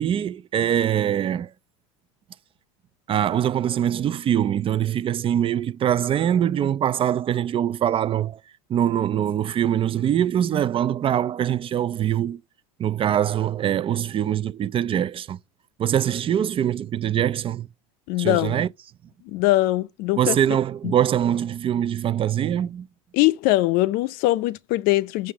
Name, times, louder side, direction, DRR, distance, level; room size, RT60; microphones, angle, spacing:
voice 1, 0.0-1.5 3.1-8.4 8.7-12.4 12.8-15.4 15.8-17.7 18.2-18.7 20.2-22.9, right 10 dB, 30° right, 0.4 m, -23 dB
voice 2, 18.1-18.6 19.3-20.4 20.8-21.0 23.1-25.3, left 17 dB, 55° left, 0.5 m, -22 dB
6.5 x 5.6 x 6.8 m
hypercardioid pair, 90°, 18 cm